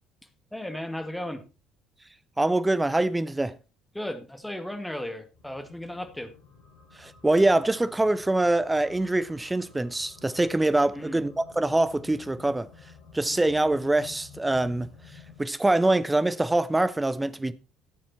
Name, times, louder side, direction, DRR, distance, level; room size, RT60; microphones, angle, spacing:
voice 1, 0.5-1.4 3.9-6.3 11.0-11.2, left 1 dB, 5° left, 2.0 m, -35 dB
voice 2, 2.4-3.5 7.0-12.7 13.1-14.9 15.4-17.5, right 2 dB, 10° right, 0.9 m, -24 dB
sound 1, 5.4-15.4, left 5 dB, 55° left, 5.8 m, -51 dB
14.0 x 7.4 x 4.4 m
figure-of-eight pair, 55°, 0 cm